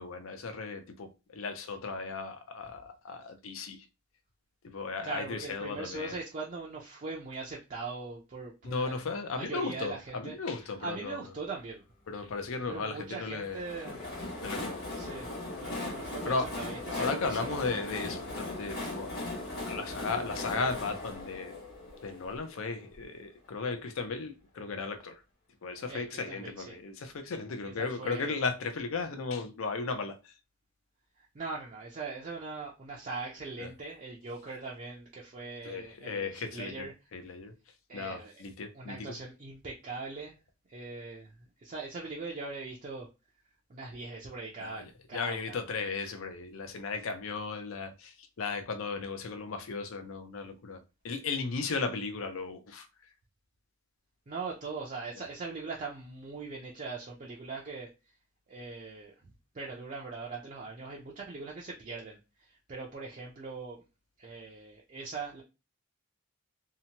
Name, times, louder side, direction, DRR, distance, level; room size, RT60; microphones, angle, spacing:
voice 1, 0.0-3.9 4.6-6.2 8.6-11.2 12.1-13.6 14.4-14.8 16.3-16.5 16.9-19.3 19.6-21.6 22.0-25.2 25.6-30.4 33.6-33.7 35.6-37.5 37.9-39.1 44.6-52.9 55.2-55.3, left 4 dB, 70° left, 0.5 m, -36 dB
voice 2, 5.0-8.9 9.3-10.3 10.6-11.8 12.7-14.0 15.0-15.3 15.6-17.5 25.9-26.8 27.7-28.3 31.2-36.9 37.9-38.4 38.7-40.4 40.7-43.1 43.7-45.6 54.3-58.1 58.5-63.9 64.2-65.4, right 4 dB, 35° right, 0.4 m, -41 dB
Train, 13.4-23.0, left 2 dB, 50° left, 1.3 m, -39 dB
2.8 x 2.1 x 2.8 m
head